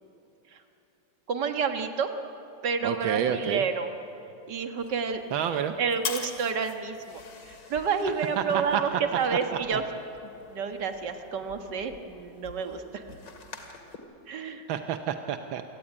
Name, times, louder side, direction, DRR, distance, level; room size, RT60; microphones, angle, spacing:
voice 1, 1.3-2.1 2.6-3.9 4.5-5.2 5.8-7.2 7.5-9.8 10.5-13.0 14.3-14.7, right 6 dB, 60° right, 6 dB, 2.2 m, -29 dB
voice 2, 2.8-3.6 5.3-5.7 8.4-8.8 9.5-9.8 14.7-15.6, right 9 dB, 85° right, 7 dB, 1.6 m, -29 dB
sound 1, 4.8-14.0, left 5 dB, 65° left, 2.7 m, -43 dB
28.0 x 17.5 x 9.8 m, 3.0 s
omnidirectional pair, 2.1 m